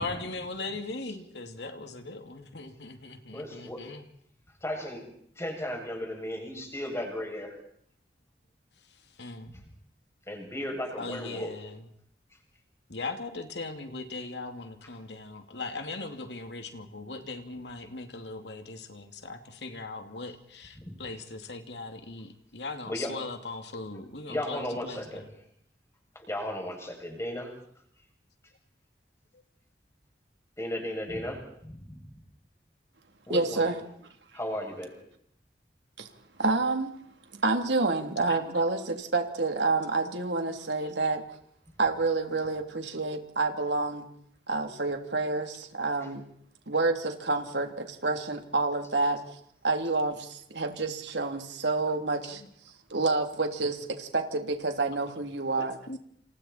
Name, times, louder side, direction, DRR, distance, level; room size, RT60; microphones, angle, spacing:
voice 1, 0.0-4.0 9.2-9.5 11.0-11.8 12.9-25.2 38.3-38.6 40.8-40.9 52.4-52.5 55.6-56.0, left 3 dB, 75° left, 6 dB, 2.7 m, -39 dB
voice 2, 3.3-4.0 4.6-7.6 10.3-11.5 20.8-20.9 22.8-23.2 24.3-25.2 26.1-27.5 30.6-32.0 33.3-33.7 34.3-34.9, left 1 dB, 15° left, 1 dB, 7.4 m, -35 dB
voice 3, 33.3-33.8 36.0-36.1 36.4-36.9 37.4-41.2 41.8-44.1 44.5-46.2 46.7-49.2 49.6-52.4 52.9-55.8, right 3 dB, 85° right, 5 dB, 3.3 m, -28 dB
28.5 x 28.5 x 4.4 m, 0.66 s
head